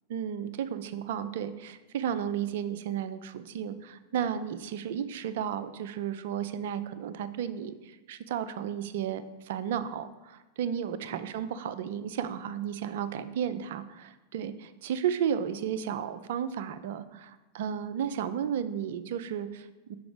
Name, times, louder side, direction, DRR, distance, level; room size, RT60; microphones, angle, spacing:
voice 1, 0.1-20.0, right 9 dB, 55° right, 12 dB, 0.4 m, -33 dB
6.0 x 4.7 x 5.0 m, 1.1 s
figure-of-eight pair, 90°, 0 cm